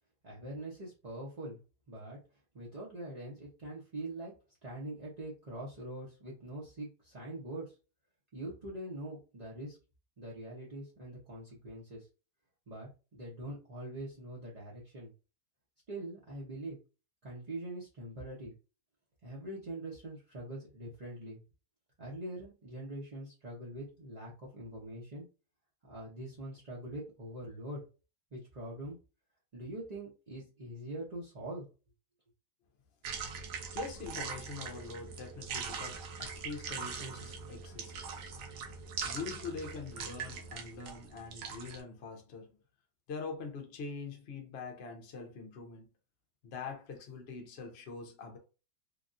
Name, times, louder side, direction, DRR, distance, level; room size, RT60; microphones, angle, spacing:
voice 1, 0.2-1.6 1.9-2.2 2.5-4.3 4.6-7.8 8.3-9.8 10.2-12.1 12.7-15.1 15.9-16.8 17.2-18.5 19.2-21.4 22.0-25.3 25.9-27.8 28.3-29.0 29.5-31.7, right 1 dB, 40° right, 0.6 m, -43 dB
sound 1, 33.0-41.8, right 5 dB, 80° right, 1.2 m, -41 dB
voice 2, 33.7-38.0 39.0-42.5 43.1-45.9 46.4-48.4, left 4 dB, 55° left, 0.7 m, -44 dB
3.4 x 2.3 x 2.6 m
omnidirectional pair, 1.8 m